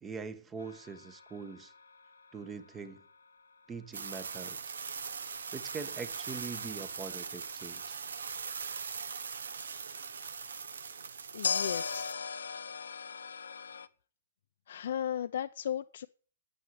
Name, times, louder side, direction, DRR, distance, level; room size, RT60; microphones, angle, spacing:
voice 1, 0.0-1.7 2.3-3.0 3.7-4.7 5.5-8.0, right 5 dB, 15° right, 1.2 m, -43 dB
sound 1, 0.6-3.6 11.4-13.9, left 6 dB, 90° left, 0.9 m, -38 dB
sound 2, 3.9-12.1, right 6 dB, 85° right, 1.1 m, -41 dB
voice 2, 11.3-12.2 14.7-16.1, left 10 dB, 65° left, 0.5 m, -36 dB
9.3 x 8.2 x 9.4 m
hypercardioid pair, 145°, 0 cm